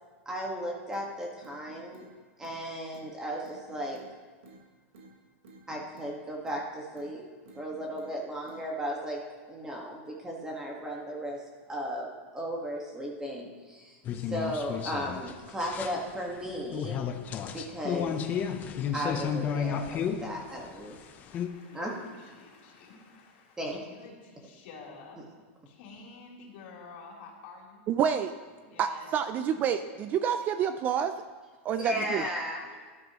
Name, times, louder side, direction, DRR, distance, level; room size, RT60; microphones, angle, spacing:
voice 1, 0.2-2.0 2.4-4.0 5.7-7.2 7.5-9.2 9.5-11.4 11.7-14.0 14.3-17.1 17.5-18.2 18.9-20.9 21.7-21.9 23.6-23.8 31.8-32.6, equal, 10° right, -2 dB, 1.6 m, -35 dB
sound 1, 0.9-1.1 1.4-2.1 2.4-2.6 2.9-3.1 3.4-4.1 4.4-4.6 4.9-5.1 5.4-6.1 6.4-6.6 6.9-7.1 7.4-8.1 8.4-8.6, right 3 dB, 90° right, 4.2 m, -52 dB
sound 2, 14.1-21.5, left 8 dB, 25° left, 0.7 m, -33 dB
voice 2, 20.2-25.2 25.7-27.8 28.6-29.1 31.8-32.8, left 4 dB, 55° left, -2 dB, 3.7 m, -49 dB
voice 3, 27.9-28.3 28.8-31.2 31.6-32.2, right 8 dB, 25° right, 10 dB, 0.4 m, -28 dB
19.0 x 12.5 x 3.1 m, 1.4 s
supercardioid pair, 160°, 7 cm